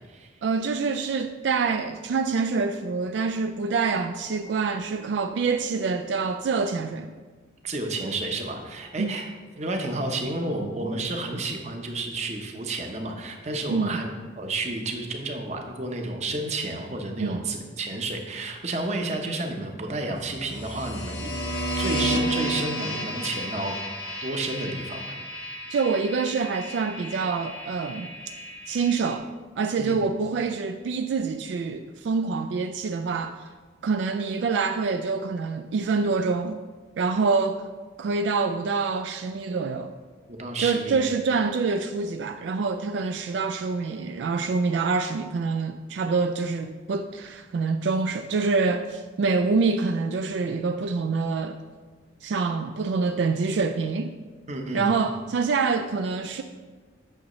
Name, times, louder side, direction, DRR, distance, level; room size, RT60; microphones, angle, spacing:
voice 1, 0.4-7.1 9.0-9.1 13.7-14.0 17.2-17.4 25.7-28.1 28.7-29.3 29.6-33.5 33.8-36.6 37.0-37.7 38.0-39.9 40.6-51.6 52.2-54.1 54.7-56.4, right 4 dB, 70° right, 0.3 m, -26 dB
voice 2, 7.6-9.3 9.6-14.1 14.4-21.3 21.7-23.7 24.2-25.1 29.8-30.0 40.3-41.0 54.5-54.9, right 2 dB, 35° right, 0.8 m, -31 dB
sound 1, 20.3-29.1, equal, 60° left, 1.0 m, -32 dB
8.7 x 6.0 x 3.1 m
head